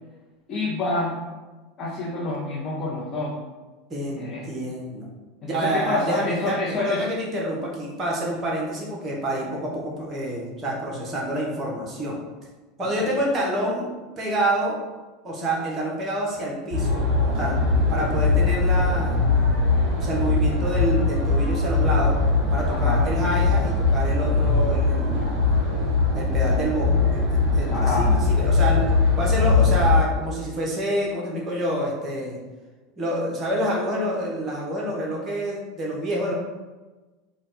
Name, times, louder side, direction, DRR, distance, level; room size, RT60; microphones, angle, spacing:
voice 1, 0.5-1.2 1.8-3.3 4.1-4.4 5.4-7.0 13.0-13.1 22.7-23.1 27.7-28.2, left 2 dB, 35° left, -5 dB, 0.9 m, -28 dB
voice 2, 3.9-5.0 5.4-12.2 12.8-13.9 14.2-14.8 15.2-17.6 17.9-19.2 20.0-22.2 22.5-25.3 26.1-28.8 29.2-32.4 33.0-36.3, right 1 dB, 30° right, -3 dB, 1.3 m, -27 dB
sound 1, 16.7-30.0, left 3 dB, 50° right, 1.4 m, -21 dB
4.0 x 2.5 x 3.9 m, 1.2 s
figure-of-eight pair, 80°, 0 cm